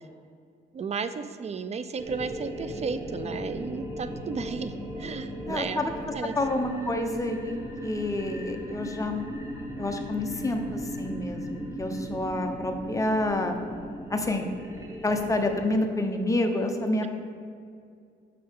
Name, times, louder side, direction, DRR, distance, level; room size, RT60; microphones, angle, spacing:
voice 1, 0.7-5.8 6.1-6.3 12.1-12.2, right 5 dB, 35° right, 12 dB, 0.4 m, -34 dB
sound 1, 2.0-15.6, equal, 15° right, 1.2 m, -37 dB
voice 2, 5.5-5.9 6.4-9.5 9.8-13.6 14.1-14.5 15.0-17.1, left 1 dB, 15° left, 4 dB, 0.8 m, -28 dB
8.5 x 5.7 x 3.6 m, 2.3 s
cardioid pair, 90°, 20 cm